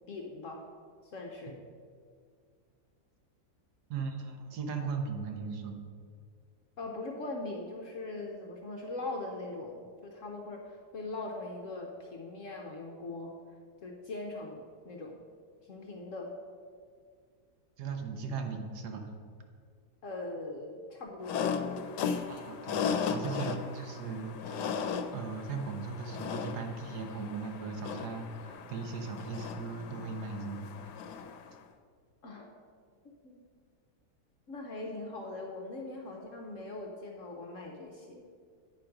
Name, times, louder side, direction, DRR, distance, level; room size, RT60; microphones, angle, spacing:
voice 1, 0.1-0.6 1.0-1.6 6.8-13.4 13.8-15.2 15.6-16.3 20.0-21.8 32.2-32.5 33.2-33.4 34.5-38.2, left 2 dB, 60° left, 1 dB, 1.0 m, -41 dB
voice 2, 3.9-5.8 17.8-19.1 22.3-24.8 25.1-30.7, right 5 dB, 80° right, 5 dB, 1.4 m, -38 dB
sound 1, 21.2-31.6, left 6 dB, 85° left, 1.2 m, -36 dB
9.0 x 5.0 x 5.8 m, 2.1 s
omnidirectional pair, 1.7 m